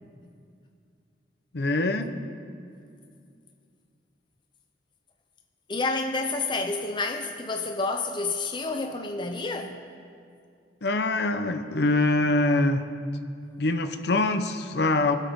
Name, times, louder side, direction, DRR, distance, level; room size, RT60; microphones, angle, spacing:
voice 1, 1.5-2.1 10.8-12.8 13.6-15.2, left 2 dB, 60° left, 0.7 m, -24 dB
voice 2, 5.7-9.8, left 3 dB, 25° left, 0.6 m, -29 dB
24.5 x 8.3 x 3.6 m
head